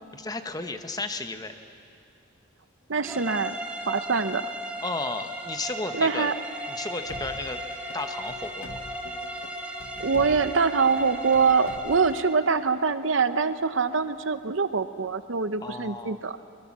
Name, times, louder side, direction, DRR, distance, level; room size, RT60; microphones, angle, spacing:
voice 1, 0.1-1.5 4.8-6.3 6.7-7.6 7.9-8.8 15.6-16.2, left 3 dB, 20° left, 8 dB, 1.0 m, -33 dB
voice 2, 2.9-3.5 3.9-4.5 5.9-6.3 10.0-16.4, right 5 dB, 70° right, 12 dB, 0.8 m, -24 dB
sound 1, 3.0-12.5, right 1 dB, 5° right, 1.7 m, -37 dB
sound 2, 5.7-11.8, left 2 dB, 45° left, 3.7 m, -46 dB
sound 3, 7.0-12.2, left 2 dB, 80° left, 1.2 m, -44 dB
24.5 x 21.5 x 7.4 m, 2.5 s
head